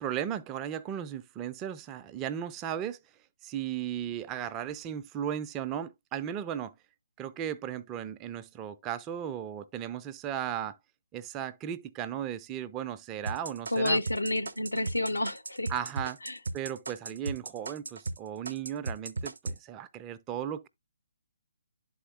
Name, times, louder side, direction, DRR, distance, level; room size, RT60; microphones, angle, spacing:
voice 1, 0.0-3.0 3.4-6.7 7.2-10.8 11.1-14.0 15.7-16.2 16.5-20.7, right 10 dB, 20° right, 0.4 m, -36 dB
sound 1, 13.3-18.2 18.5-19.6, right 3 dB, 65° right, 0.6 m, -36 dB
voice 2, 13.7-15.7 16.2-16.4, left 1 dB, 75° left, 0.9 m, -29 dB
11.0 x 4.3 x 2.3 m
figure-of-eight pair, 135°, 0 cm